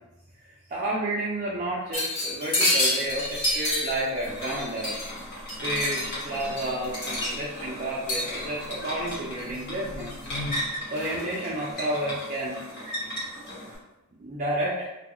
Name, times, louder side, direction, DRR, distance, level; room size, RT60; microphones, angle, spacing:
voice 1, 0.7-5.0 5.6-10.1 10.9-12.6 14.1-14.9, right 1 dB, 35° right, -6 dB, 0.4 m, -31 dB
sound 1, 1.9-5.2 5.5-7.6 8.1-8.7 9.1-9.6 10.0-10.5 10.9-11.5, left 1 dB, 75° left, 1.4 m, -29 dB
Buzz, 3.1-10.8, left 1 dB, 20° left, 0.6 m, -44 dB
sound 2, 4.3-13.8, left 1 dB, 50° left, 1.1 m, -36 dB
2.9 x 2.3 x 2.9 m, 1.0 s
head